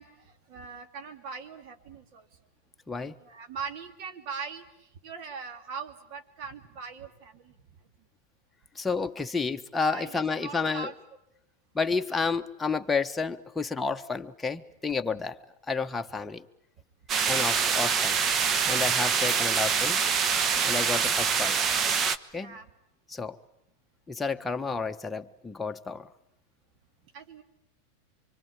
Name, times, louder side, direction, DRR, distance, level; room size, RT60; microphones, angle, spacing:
voice 1, 0.0-2.3 3.2-7.5 9.9-10.9 17.4-17.6 18.8-19.0 19.3-19.6 20.7-21.1 22.3-22.7 27.1-27.4, right 5 dB, 50° right, 7 dB, 3.1 m, -41 dB
voice 2, 8.7-10.9 11.7-15.4 15.7-16.4 17.2-18.3 18.7-20.0 20.6-21.7 22.3-22.6 23.1-23.4 24.1-26.1, left 4 dB, 10° left, 5 dB, 1.3 m, -30 dB
sound 1, 17.1-22.2, right 6 dB, 30° right, 1.1 m, -25 dB
25.5 x 25.0 x 8.9 m, 0.80 s
hypercardioid pair, 110°, 0 cm